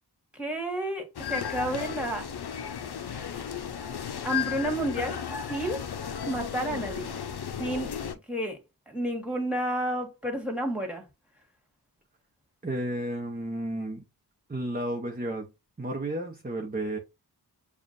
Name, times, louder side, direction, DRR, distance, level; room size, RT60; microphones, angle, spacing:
voice 1, 0.4-2.2 4.2-5.2 5.5-5.8 6.3-7.2 7.6-7.9 8.3-8.6 8.9-11.0, right 1 dB, 5° right, 1.7 m, -30 dB
sound 1, 1.1-8.1, left 8 dB, 65° left, 0.7 m, -34 dB
voice 2, 12.6-14.0 14.5-15.5 15.8-17.0, right 1 dB, 20° right, 0.8 m, -32 dB
7.1 x 2.4 x 2.6 m
wide cardioid pair, 80°, 42 cm